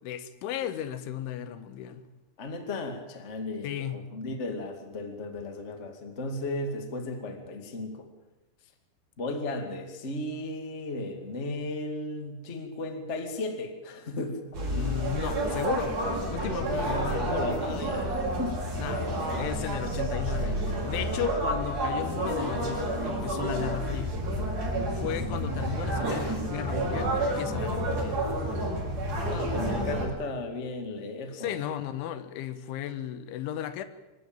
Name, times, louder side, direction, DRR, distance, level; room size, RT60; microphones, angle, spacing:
voice 1, 0.0-2.1 3.6-4.1 14.7-17.3 18.8-24.2 24.9-28.2 31.3-33.8, left 10 dB, 85° left, 3.7 m, -35 dB
voice 2, 2.4-8.1 9.2-14.4 16.7-18.6 26.1-26.4 29.3-31.5, left 2 dB, 30° left, 1.4 m, -35 dB
sound 1, 14.5-30.0, right 1 dB, 45° right, 6.9 m, -30 dB
25.0 x 14.0 x 9.0 m
omnidirectional pair, 5.3 m